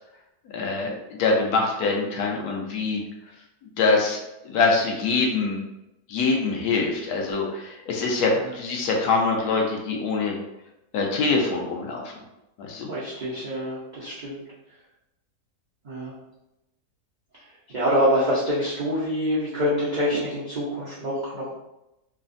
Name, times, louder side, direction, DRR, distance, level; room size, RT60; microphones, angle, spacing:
voice 1, 0.5-3.0 3.8-5.6 6.1-10.3 10.9-12.1 12.6-12.9, left 3 dB, 75° left, 0 dB, 1.1 m, -24 dB
voice 2, 12.9-14.4 15.8-16.1 17.7-21.5, equal, 65° right, -9 dB, 0.4 m, -25 dB
3.2 x 2.0 x 2.5 m, 0.90 s
omnidirectional pair, 1.7 m